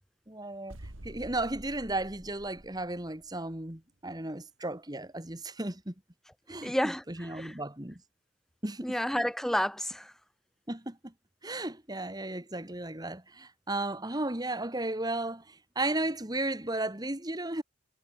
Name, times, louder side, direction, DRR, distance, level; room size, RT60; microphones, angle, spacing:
voice 1, 0.3-0.8 1.0-5.9 6.5-8.0 8.6-9.0 10.7-11.1 11.4-17.6, right 2 dB, 20° right, 2.0 m, -34 dB
sound 1, 0.7-3.4, right 1 dB, 75° right, 2.3 m, -48 dB
voice 2, 6.6-7.5 8.8-10.1, equal, ahead, 0.5 m, -30 dB
head